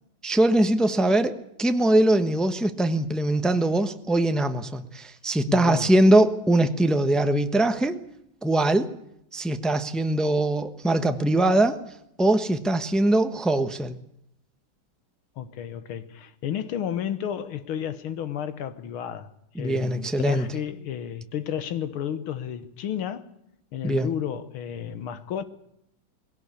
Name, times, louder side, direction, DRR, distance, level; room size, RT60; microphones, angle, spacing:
voice 1, 0.2-8.0 8.4-8.9 9.3-11.8 12.2-14.0 19.5-20.5 23.8-24.1, right 1 dB, ahead, 0.5 m, -22 dB
voice 2, 5.5-5.9 15.4-19.3 19.6-23.3 23.7-25.4, left 9 dB, 90° left, 2.0 m, -32 dB
21.0 x 17.5 x 8.4 m
omnidirectional pair, 2.3 m